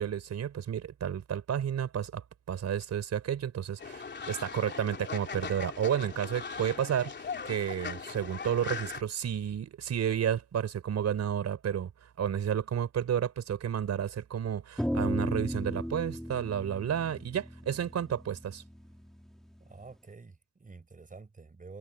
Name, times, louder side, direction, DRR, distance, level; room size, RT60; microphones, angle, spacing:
voice 1, 0.0-11.9 12.2-18.6, right 9 dB, 60° right, 5.0 m, -31 dB
Fowl, 3.8-9.0, left 5 dB, 35° left, 3.4 m, -39 dB
sound 1, 14.8-19.3, equal, ahead, 3.1 m, -35 dB
voice 2, 19.6-21.8, right 4 dB, 25° right, 4.8 m, -49 dB
cardioid pair, 90°, 30 cm